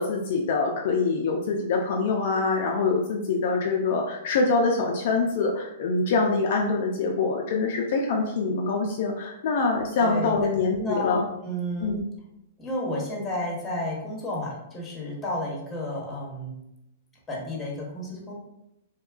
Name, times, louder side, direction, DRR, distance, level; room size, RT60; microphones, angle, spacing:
voice 1, 0.0-11.2 11.8-12.0, left 4 dB, 60° left, 0 dB, 0.3 m, -25 dB
voice 2, 10.0-10.3 10.8-11.9 12.6-16.5 17.3-18.3, left 1 dB, 15° left, -3 dB, 0.9 m, -31 dB
2.8 x 2.3 x 2.3 m, 0.85 s
hypercardioid pair, 120°, 0 cm